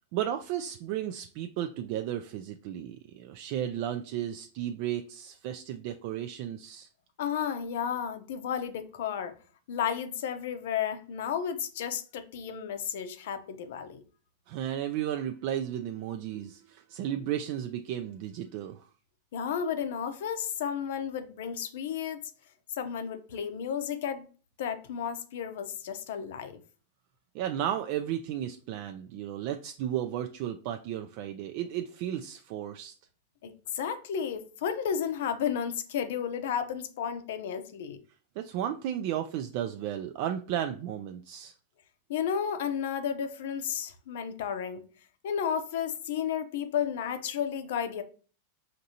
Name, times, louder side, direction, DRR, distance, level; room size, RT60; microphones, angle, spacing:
voice 1, 0.1-6.9 14.5-18.9 27.3-32.9 38.4-41.5, right 11 dB, 50° right, 0.3 m, -34 dB
voice 2, 7.2-9.3 9.7-14.0 19.3-22.2 22.7-24.3 24.6-26.6 33.4-38.0 42.1-44.8 45.2-48.0, left 8 dB, 70° left, 0.6 m, -32 dB
5.1 x 2.6 x 2.8 m
supercardioid pair, 135°, 0 cm